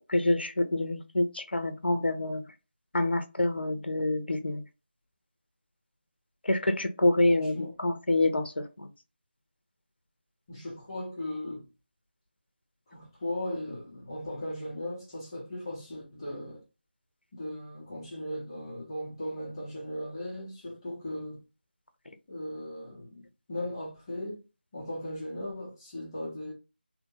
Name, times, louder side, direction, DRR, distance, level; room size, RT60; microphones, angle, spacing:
voice 1, 0.1-2.4 2.9-4.6 6.4-8.9, left 2 dB, 70° left, 0.7 m, -27 dB
voice 2, 7.3-7.7 10.5-11.7 12.9-16.6 17.3-21.4 22.3-24.4 24.7-26.5, left 1 dB, 25° left, 1.0 m, -37 dB
3.3 x 2.1 x 2.9 m
figure-of-eight pair, 165°, 6 cm